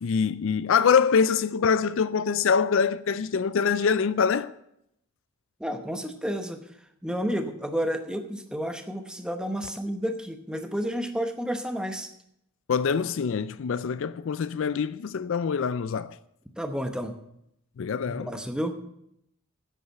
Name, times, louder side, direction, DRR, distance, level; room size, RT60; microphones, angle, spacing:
voice 1, 0.0-4.5 12.7-16.2 17.8-18.3, left 6 dB, 60° left, 0.4 m, -24 dB
voice 2, 5.6-6.7 7.0-12.1 16.6-17.1 18.1-18.7, equal, 5° right, 0.9 m, -31 dB
10.5 x 8.3 x 6.7 m
head